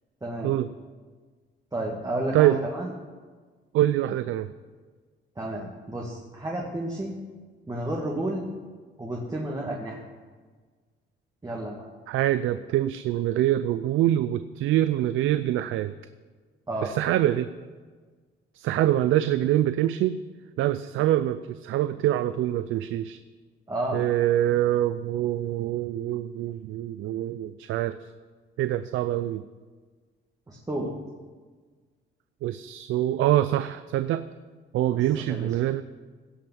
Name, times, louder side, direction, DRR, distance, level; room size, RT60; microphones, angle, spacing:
voice 1, 0.2-0.5 1.7-2.9 5.4-7.2 7.7-8.5 9.0-10.0 11.4-11.9 16.7-16.9 23.7-24.1 30.5-30.9 34.9-35.5, right 1 dB, 20° right, -2 dB, 1.9 m, -31 dB
voice 2, 3.7-4.5 12.1-15.9 16.8-17.5 18.5-20.2 20.6-23.2 23.9-28.0 28.6-29.4 32.4-34.2 34.7-35.8, right 13 dB, 85° right, 12 dB, 0.5 m, -25 dB
17.0 x 5.7 x 7.0 m, 1.4 s
cardioid pair, 90°, 20 cm